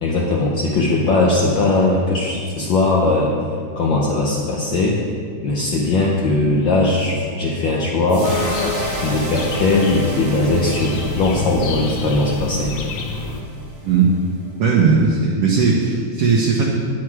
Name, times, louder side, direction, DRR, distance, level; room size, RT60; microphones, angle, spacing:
voice 1, 0.0-3.3 3.8-5.0 5.4-8.3 9.0-12.7, left 2 dB, 85° left, -2 dB, 1.0 m, -19 dB
sound 1, 8.1-14.5, right 1 dB, 40° right, 1.0 m, -32 dB
sound 2, 8.2-13.4, left 3 dB, 70° left, 1.4 m, -28 dB
voice 2, 13.8-14.1 14.6-16.7, right 5 dB, 65° right, -2 dB, 1.6 m, -17 dB
9.6 x 9.5 x 4.7 m, 2.2 s
omnidirectional pair, 3.4 m